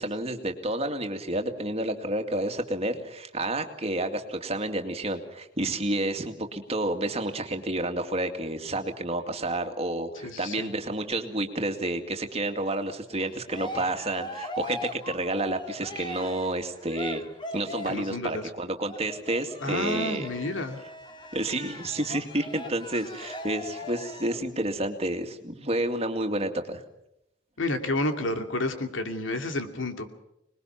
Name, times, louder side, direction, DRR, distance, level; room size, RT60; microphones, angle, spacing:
voice 1, 0.0-17.2 17.5-20.3 21.3-26.8, right 1 dB, 30° right, 5 dB, 2.3 m, -30 dB
voice 2, 10.2-10.7 17.9-18.4 19.6-20.8 27.6-30.1, left 2 dB, 80° left, 6 dB, 2.6 m, -30 dB
Cheering, 13.1-18.1 18.9-24.4, left 1 dB, 25° left, 2.2 m, -40 dB
26.5 x 21.0 x 5.9 m, 0.81 s
head